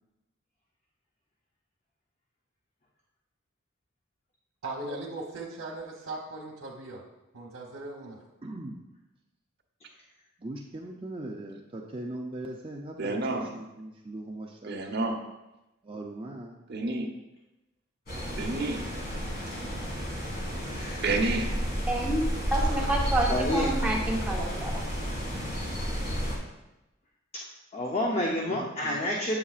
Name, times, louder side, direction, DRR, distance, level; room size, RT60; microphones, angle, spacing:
voice 1, 4.6-7.0 7.3-8.2, right 2 dB, 90° right, -4 dB, 1.0 m, -38 dB
voice 2, 8.4-8.9 10.4-15.0 15.8-16.6 28.4-29.0, right 1 dB, 25° right, 0 dB, 0.5 m, -40 dB
voice 3, 13.0-13.5 14.6-15.2 16.7-17.1 18.4-18.8 21.0-21.5, right 3 dB, 50° right, 1 dB, 1.0 m, -29 dB
sound 1, 18.1-26.4, equal, 50° left, 1.9 m, -31 dB
voice 4, 20.2-21.0 22.6-22.8 23.3-23.7 24.5-24.7 27.3-27.5 27.7-29.4, left 1 dB, 30° left, -1 dB, 0.6 m, -30 dB
voice 5, 21.9-22.2 22.5-24.8, right 2 dB, 5° right, -4 dB, 0.9 m, -28 dB
8.2 x 6.9 x 2.4 m, 0.96 s
head